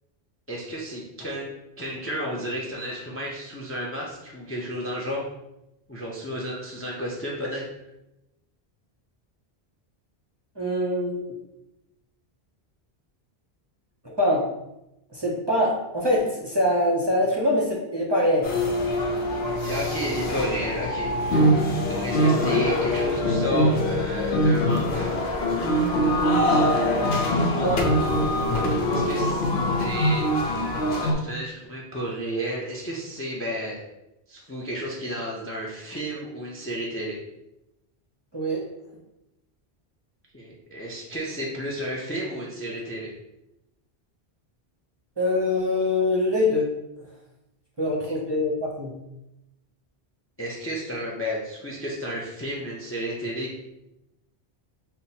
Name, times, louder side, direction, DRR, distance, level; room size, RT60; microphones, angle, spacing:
voice 1, 0.5-5.3 5.9-7.7 19.6-21.1 21.9-25.2 28.4-29.5 29.8-30.3 31.0-33.8 34.3-37.2 40.3-43.1 50.4-53.6, equal, 20° left, -3 dB, 0.4 m, -32 dB
voice 2, 10.6-11.3 14.0-14.4 15.1-18.5 27.5-27.8 38.3-38.6 45.2-46.7 47.8-48.9, left 1 dB, 30° right, -3 dB, 0.6 m, -24 dB
sound 1, 18.4-31.1, equal, 70° left, 0.8 m, -23 dB
5.8 x 2.1 x 2.7 m, 0.90 s
omnidirectional pair, 1.1 m